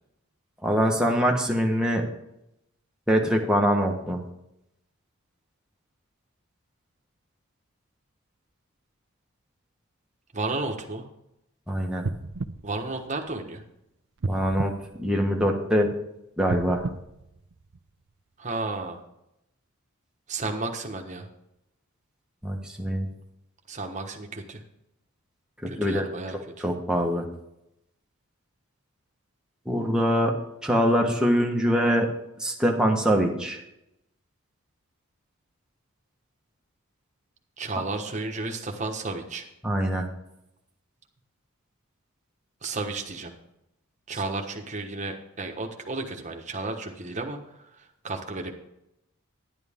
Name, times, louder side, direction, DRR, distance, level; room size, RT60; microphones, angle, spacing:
voice 1, 0.6-2.0 3.1-4.2 11.7-12.0 14.3-14.7 15.0-15.9 16.4-16.8 22.4-23.1 25.6-27.2 29.7-30.3 30.6-32.1 32.4-33.6 39.6-40.1, equal, 5° right, 0 dB, 1.3 m, -24 dB
voice 2, 10.3-11.1 12.6-13.6 18.4-19.0 20.3-21.3 23.7-24.6 25.7-26.6 37.6-39.4 42.6-43.3 44.1-47.4 48.0-48.5, right 3 dB, 35° right, 3 dB, 1.3 m, -32 dB
sound 1, 12.0-13.7 14.2-15.8 16.4-18.1 18.6-18.7, right 3 dB, 55° right, 0.5 m, -34 dB
11.0 x 11.0 x 3.6 m, 0.83 s
head